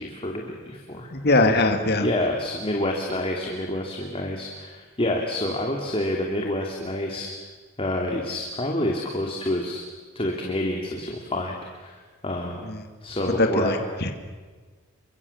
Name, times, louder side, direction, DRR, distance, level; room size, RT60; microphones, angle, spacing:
voice 1, 0.0-1.1 2.0-7.3 7.8-9.8 10.1-12.7 13.0-13.7, left 1 dB, 30° left, 1 dB, 2.8 m, -28 dB
voice 2, 1.1-2.1 12.6-12.8 13.4-14.1, left 2 dB, 50° left, 5 dB, 2.3 m, -21 dB
29.0 x 24.5 x 7.2 m, 1.4 s
head